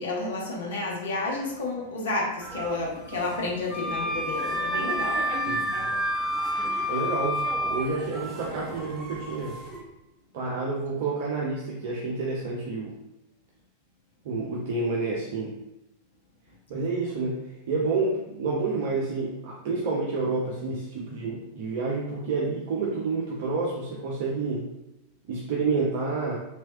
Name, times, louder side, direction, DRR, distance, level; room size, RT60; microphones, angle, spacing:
voice 1, 0.0-5.3, left 2 dB, 60° left, -2 dB, 1.0 m, -31 dB
sound 1, 2.4-9.8, right 4 dB, 20° right, 1.1 m, -35 dB
sound 2, 3.7-7.9, left 2 dB, 15° left, 0.5 m, -29 dB
voice 2, 5.5-5.8 6.9-9.6 10.3-12.9 14.2-15.5 16.7-17.4 17.7-24.7 25.3-26.4, right 3 dB, 50° right, -3 dB, 0.6 m, -29 dB
3.3 x 3.1 x 2.8 m, 0.94 s
figure-of-eight pair, 90°, 0 cm